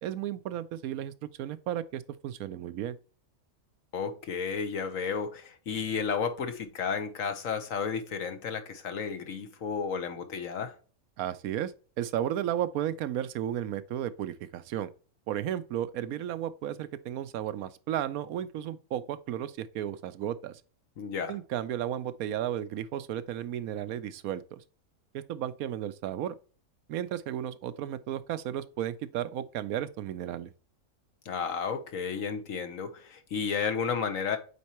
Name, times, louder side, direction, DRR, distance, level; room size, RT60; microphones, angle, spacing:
voice 1, 0.0-3.0 11.2-11.7 12.0-14.9 15.3-20.6 21.3-24.6 25.1-26.3 26.9-30.5, right 11 dB, 80° right, 1.1 m, -34 dB
voice 2, 3.9-10.7 21.0-21.4 31.2-34.4, left 6 dB, 65° left, 1.4 m, -32 dB
8.4 x 4.4 x 3.0 m
omnidirectional pair, 1.5 m